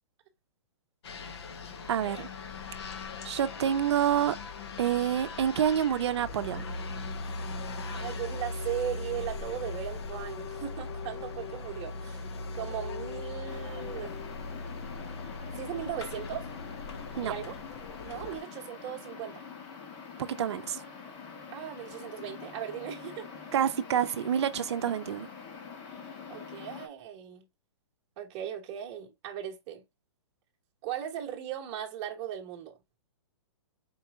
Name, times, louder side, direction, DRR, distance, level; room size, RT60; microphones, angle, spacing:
sound 1, 1.0-18.4, left 3 dB, 60° left, 1.1 m, -39 dB
voice 1, 1.9-2.3 3.2-4.4 4.8-6.7 17.1-17.3 20.2-20.8 23.5-25.3, right 9 dB, 65° right, 0.6 m, -28 dB
voice 2, 7.9-12.3 12.5-14.1 15.5-16.5 17.2-17.6 18.0-19.4 21.5-23.3 26.3-27.5 28.2-29.8 30.8-32.8, right 10 dB, 30° right, 1.1 m, -38 dB
sound 2, 13.5-26.9, left 6 dB, 30° left, 1.1 m, -45 dB
4.5 x 2.9 x 3.5 m
hypercardioid pair, 155°, 15 cm